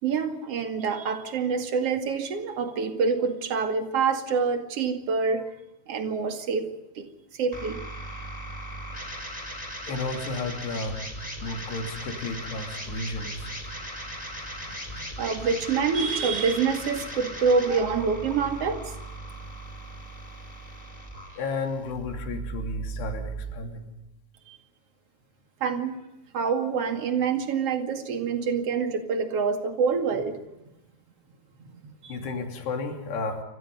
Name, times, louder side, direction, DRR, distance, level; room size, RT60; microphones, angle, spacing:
voice 1, 0.0-5.5 5.9-7.9 15.2-18.9 24.5-24.6 25.6-26.0 26.3-30.4 31.6-32.3, right 5 dB, 45° right, 6 dB, 2.7 m, -26 dB
sound 1, 7.5-23.5, right 1 dB, 10° left, 4.0 m, -38 dB
voice 2, 9.9-11.1 11.4-13.5 14.9-15.0 21.4-23.8 32.1-33.4, left 3 dB, 90° left, 4 dB, 5.1 m, -33 dB
28.0 x 25.5 x 5.5 m, 0.91 s
omnidirectional pair, 4.6 m